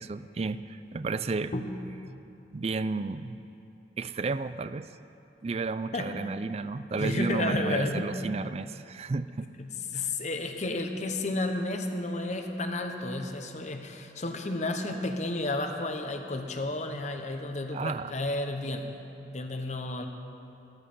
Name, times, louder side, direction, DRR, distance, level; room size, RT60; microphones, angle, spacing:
voice 1, 0.0-1.5 2.5-3.4 4.0-4.9 5.4-9.5 9.9-10.1 17.7-18.1, right 3 dB, 35° right, 14 dB, 0.4 m, -32 dB
voice 2, 7.0-8.1 9.6-19.0 19.3-20.1, left 2 dB, 40° left, 5 dB, 1.0 m, -32 dB
14.0 x 13.5 x 5.6 m, 2.7 s
head